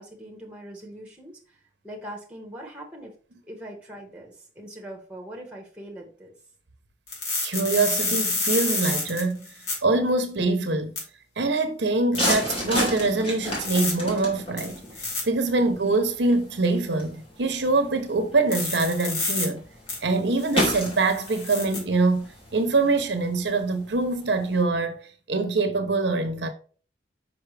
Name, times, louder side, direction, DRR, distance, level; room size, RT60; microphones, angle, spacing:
voice 1, 0.0-3.1 3.5-6.3, right 1 dB, 5° right, 1.5 m, -41 dB
sound 1, 7.1-9.7 11.0-11.1 12.1-12.2 13.5-13.9 14.6-15.2 18.5-19.5 19.9-20.0 20.4-21.8, left 3 dB, 65° left, 2.6 m, -28 dB
voice 2, 7.4-9.4 9.8-10.9 11.4-14.8 15.2-19.6 20.0-25.0 25.3-26.5, right 3 dB, 70° right, 0.8 m, -24 dB
sound 2, 12.1-24.6, left 1 dB, 30° left, 2.3 m, -33 dB
5.8 x 5.5 x 3.3 m
head